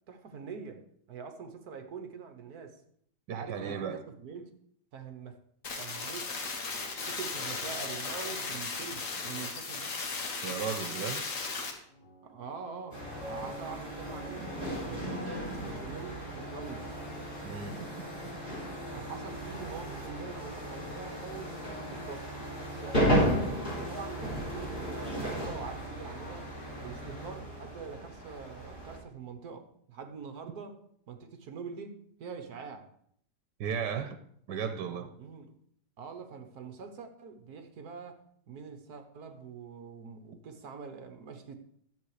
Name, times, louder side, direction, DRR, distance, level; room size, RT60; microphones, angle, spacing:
voice 1, 0.1-2.8 3.3-4.5 4.9-5.4 5.8-6.5 7.1-9.9 12.2-14.4 14.8-16.9 18.9-22.3 22.6-23.4 23.8-26.5 26.8-30.8 31.1-32.8 35.2-35.5 36.0-38.2 38.5-41.5, right 5 dB, 65° right, 6 dB, 1.6 m, -44 dB
voice 2, 3.3-4.0 10.4-11.2 17.4-17.9 22.9-23.2 33.6-34.2 34.5-35.1, right 7 dB, 90° right, 9 dB, 1.4 m, -35 dB
sound 1, 5.6-11.7, left 4 dB, 55° left, 1.7 m, -36 dB
sound 2, 10.9-27.1, equal, 90° left, 2.5 m, -51 dB
sound 3, 12.9-29.0, equal, 30° left, 3.6 m, -35 dB
10.5 x 7.8 x 4.9 m, 0.68 s
omnidirectional pair, 1.8 m